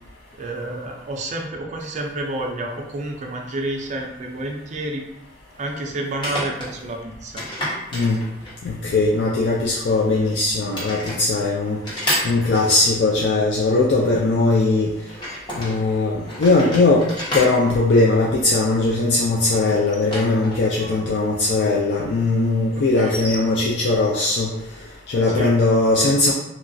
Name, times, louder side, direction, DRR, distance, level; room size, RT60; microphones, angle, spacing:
voice 1, 0.4-5.0 5.6-7.4 22.7-23.3 25.3-25.6, right 1 dB, 40° right, 1 dB, 0.4 m, -29 dB
sound 1, 4.0-4.1 6.1-6.7 7.4-8.7 9.6-10.3 10.7-11.2 11.8-13.0 15.1-15.8 16.2-18.7 19.7-21.0 21.2-21.3 23.0-23.4, equal, 25° left, 0.9 m, -30 dB
voice 2, 7.9-8.2 8.6-11.8 12.2-14.9 15.5-17.1 17.3-24.5 25.1-26.3, left 3 dB, 70° left, -3 dB, 0.4 m, -19 dB
2.9 x 2.3 x 2.6 m, 0.86 s
head